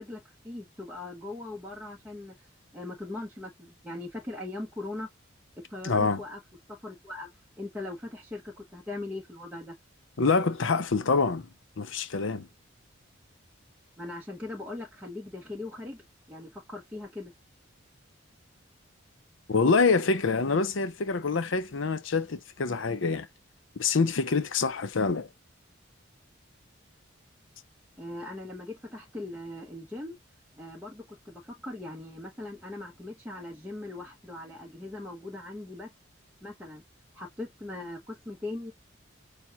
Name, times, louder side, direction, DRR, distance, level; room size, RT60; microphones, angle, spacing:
voice 1, 0.0-2.5 2.7-5.1 5.6-6.4 6.7-7.3 7.6-9.8 14.0-17.3 28.0-30.2 30.6-35.9 36.4-36.8 37.1-38.7, left 2 dB, 10° right, 1.1 m, -40 dB
voice 2, 5.8-6.2 10.2-11.5 11.8-12.5 19.5-23.3 23.8-25.3, left 4 dB, 70° left, 0.7 m, -26 dB
7.2 x 2.4 x 3.0 m
head